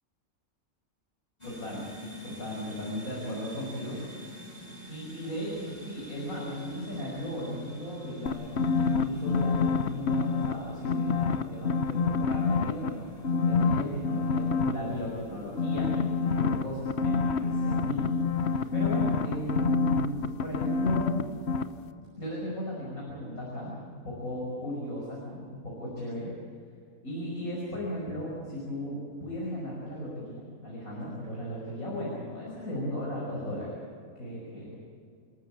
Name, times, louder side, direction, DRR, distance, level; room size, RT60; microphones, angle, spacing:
voice 1, 1.4-1.9 2.2-4.0 4.9-21.7 22.2-23.7 24.0-26.3 27.0-33.7 34.2-34.7, equal, 70° left, -4 dB, 6.2 m, -36 dB
sound 1, 1.4-16.8, left 1 dB, 25° left, 4.8 m, -46 dB
sound 2, 8.3-10.5 10.8-12.9 13.2-14.7 15.6-21.2 21.5-21.6, left 5 dB, 50° left, 1.2 m, -26 dB
29.0 x 13.5 x 8.7 m, 2.4 s
omnidirectional pair, 1.5 m